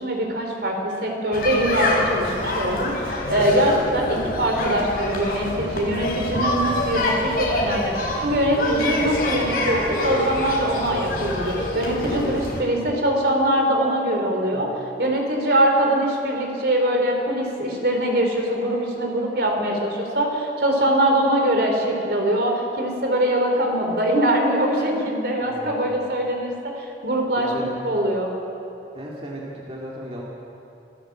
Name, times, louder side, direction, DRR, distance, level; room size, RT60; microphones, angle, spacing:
voice 1, 0.0-14.7 15.0-27.5 27.8-28.3, right 1 dB, 60° right, 2 dB, 4.0 m, -22 dB
sound 1, 1.3-12.6, left 1 dB, 55° left, 4.6 m, -26 dB
voice 2, 25.4-26.1 27.4-27.8 28.9-30.2, right 1 dB, 30° right, -3 dB, 2.4 m, -36 dB
26.0 x 16.0 x 7.6 m, 2.8 s
head